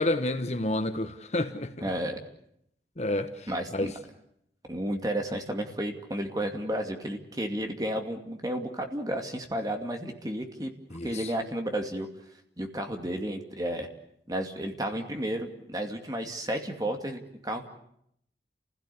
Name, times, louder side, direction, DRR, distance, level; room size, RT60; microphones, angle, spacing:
voice 1, 0.0-1.7 3.0-3.9 10.9-11.3, left 2 dB, 40° left, 1.1 m, -29 dB
voice 2, 1.8-2.2 3.5-3.9 4.7-10.7 11.0-12.1 12.6-13.9 14.3-17.7, right 1 dB, 20° right, 2.5 m, -32 dB
29.5 x 16.5 x 8.6 m
head